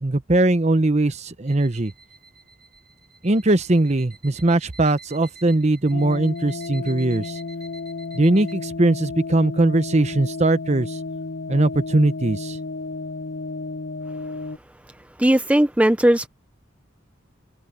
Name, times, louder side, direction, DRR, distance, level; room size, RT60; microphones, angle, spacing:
voice 1, 0.0-1.9 3.2-7.4 8.1-11.0 11.5-12.6, right 2 dB, 35° right, 0.9 m, -20 dB
sound 1, 1.5-8.5, right 5 dB, 55° right, 5.0 m, -49 dB
sound 2, 5.9-14.6, left 3 dB, 55° left, 0.6 m, -32 dB
voice 2, 15.2-16.3, right 1 dB, 5° right, 0.6 m, -17 dB
head